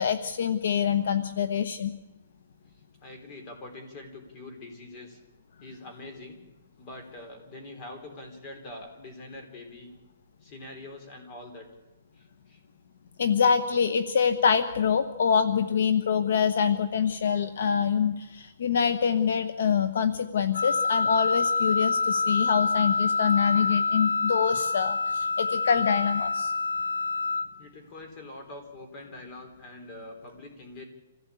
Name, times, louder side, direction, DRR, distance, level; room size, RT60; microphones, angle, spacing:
voice 1, 0.0-1.9 13.2-26.5, left 7 dB, 60° left, 11 dB, 1.1 m, -25 dB
voice 2, 3.0-5.2 5.6-6.4 6.8-9.9 10.4-11.7 12.1-12.6 27.6-30.8, left 2 dB, 20° left, 5 dB, 3.7 m, -44 dB
Wind instrument woodwind instrument, 20.5-27.5, left 4 dB, 85° left, 1.2 m, -26 dB
25.5 x 16.0 x 8.5 m, 1.1 s
hypercardioid pair, 175°, 0 cm